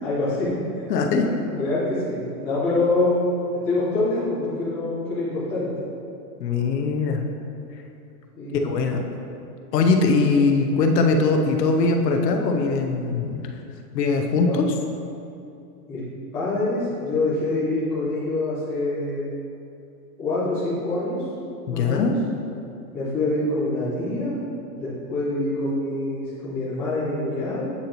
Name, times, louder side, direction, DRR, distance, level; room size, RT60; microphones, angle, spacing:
voice 1, 0.0-0.9 1.2-3.3 3.6-5.7 8.4-8.7 14.3-14.6 15.9-16.0 16.3-19.3 20.2-21.2 21.7-22.1 22.9-24.4 24.8-27.7, left 2 dB, 5° left, -13 dB, 0.5 m, -25 dB
voice 2, 0.9-1.2 6.4-7.2 8.6-9.0 9.7-13.5 13.9-14.7 21.7-22.2, left 4 dB, 85° left, 3 dB, 0.9 m, -21 dB
8.7 x 3.9 x 2.9 m, 2.6 s
supercardioid pair, 170°, 48 cm